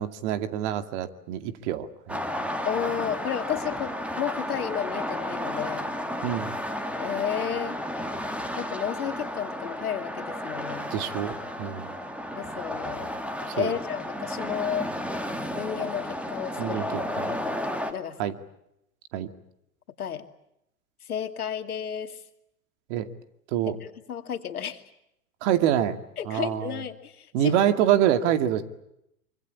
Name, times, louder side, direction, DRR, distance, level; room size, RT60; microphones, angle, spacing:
voice 1, 0.0-2.2 6.2-6.5 10.9-11.9 13.5-13.7 16.6-16.9 17.2-17.4 18.2-18.3 19.1-19.3 22.9-23.1 23.5-23.8 25.4-26.0 26.3-26.8 27.3-28.6, right 11 dB, 50° right, 10 dB, 2.4 m, -26 dB
sound 1, 2.1-17.9, equal, 5° right, 2.4 m, -33 dB
voice 2, 2.7-5.9 7.0-7.8 8.6-10.9 12.4-13.1 13.6-14.9 15.5-16.8 17.1-17.6 17.9-18.3 20.0-20.2 21.1-22.2 23.6-24.8 26.2-27.6, left 9 dB, 80° left, 8 dB, 2.5 m, -32 dB
25.0 x 24.5 x 8.6 m, 0.81 s
hypercardioid pair, 110°, 44 cm